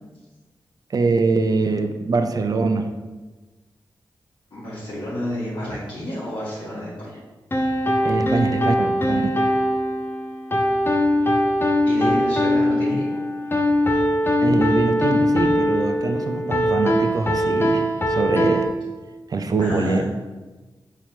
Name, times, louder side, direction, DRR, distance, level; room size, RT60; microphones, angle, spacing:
voice 1, 0.9-2.9 8.0-9.3 14.4-18.7 19.3-20.0, right 3 dB, 45° right, 7 dB, 0.4 m, -23 dB
voice 2, 4.5-7.2 11.9-13.1 19.6-20.0, equal, 70° left, -9 dB, 1.1 m, -30 dB
sound 1, 7.5-18.7, equal, 25° left, 0.5 m, -21 dB
4.2 x 2.9 x 2.8 m, 1.2 s
cardioid pair, 40°, 9 cm